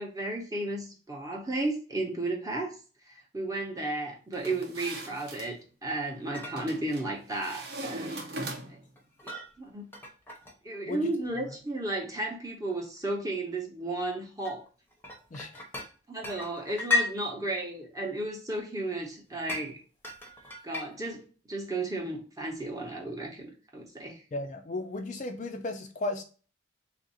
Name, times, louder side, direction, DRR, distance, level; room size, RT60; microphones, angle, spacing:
voice 1, 0.0-2.8 3.1-8.2 8.7-8.8 9.2-9.9 10.6-14.6 16.1-19.8 20.6-21.2 21.5-24.2, right 2 dB, 15° right, 0.8 m, -34 dB
sound 1, 4.3-5.5 6.6-7.1 7.4-8.9, right 1 dB, 50° right, 0.7 m, -39 dB
sound 2, 6.0-6.1 6.3-6.6 9.0-9.5 9.9-10.5 11.1-11.6 12.7-13.0 13.5-13.6 14.4-15.9 16.2-17.1 19.5-19.6 20.0-20.9, left 3 dB, 10° left, 0.7 m, -34 dB
voice 2, 15.3-15.6 24.3-26.2, left 2 dB, 35° left, 0.4 m, -35 dB
3.5 x 2.6 x 4.0 m
head